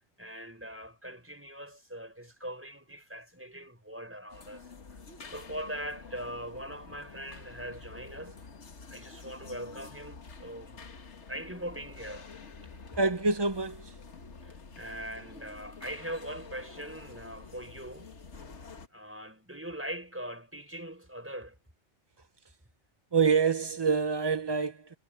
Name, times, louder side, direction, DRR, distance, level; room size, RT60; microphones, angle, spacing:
voice 1, 0.2-4.7 5.2-8.4 8.9-10.8 11.3-12.3 14.4-18.1 18.9-21.6, equal, 10° right, 4.6 m, -41 dB
sound 1, 4.3-18.9, left 4 dB, 60° left, 1.8 m, -48 dB
voice 2, 13.0-14.0 23.1-25.0, right 5 dB, 35° right, 0.4 m, -26 dB
omnidirectional pair, 1.4 m